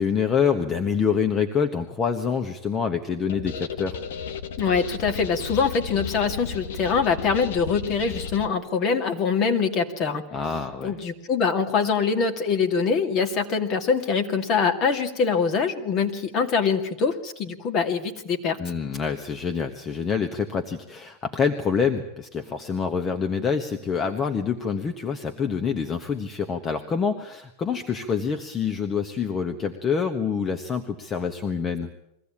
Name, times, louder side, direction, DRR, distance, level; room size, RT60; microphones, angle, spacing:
voice 1, 0.0-4.0 10.3-10.9 18.6-31.9, left 6 dB, 25° left, 6 dB, 1.4 m, -26 dB
sound 1, 3.3-8.5, left 7 dB, 75° left, 1.3 m, -34 dB
voice 2, 4.6-10.2 10.8-18.6, left 5 dB, 40° left, 5 dB, 2.4 m, -24 dB
22.5 x 15.0 x 8.7 m, 0.81 s
hypercardioid pair, 110°, 0 cm